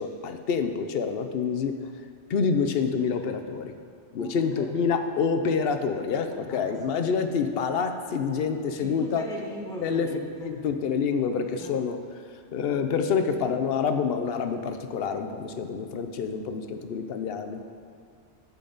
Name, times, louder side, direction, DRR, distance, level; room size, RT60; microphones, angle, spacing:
voice 1, 0.0-1.8 2.3-3.7 4.1-9.3 9.8-10.1 10.4-12.0 12.5-17.6, left 6 dB, 60° left, 7 dB, 0.8 m, -27 dB
voice 2, 4.2-4.7 6.3-7.0 8.8-10.6 11.6-11.8, equal, 5° left, -2 dB, 1.0 m, -39 dB
10.0 x 8.4 x 4.0 m, 2.1 s
omnidirectional pair, 1.2 m